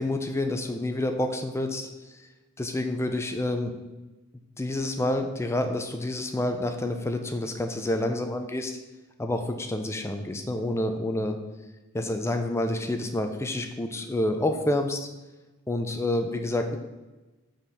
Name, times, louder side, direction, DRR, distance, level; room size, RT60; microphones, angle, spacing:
voice 1, 0.0-2.3 2.6-3.7 4.6-8.8 9.2-11.4 11.9-15.1 15.7-16.8, left 1 dB, 10° left, 6 dB, 0.4 m, -28 dB
5.5 x 4.3 x 6.0 m, 1.1 s
head